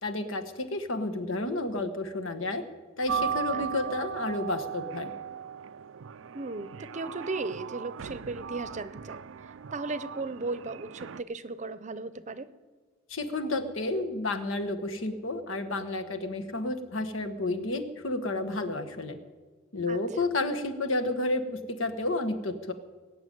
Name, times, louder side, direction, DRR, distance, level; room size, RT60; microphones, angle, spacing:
voice 1, 0.0-2.6 3.0-5.1 13.1-19.2 19.7-22.7, left 2 dB, 75° left, 7 dB, 1.5 m, -31 dB
sound 1, 3.1-11.2, right 8 dB, 70° right, 0.5 m, -37 dB
voice 2, 3.5-3.9 6.3-9.2 9.7-12.5 19.9-20.0, right 3 dB, 35° right, 13 dB, 0.7 m, -36 dB
21.0 x 7.0 x 9.4 m, 1.4 s
head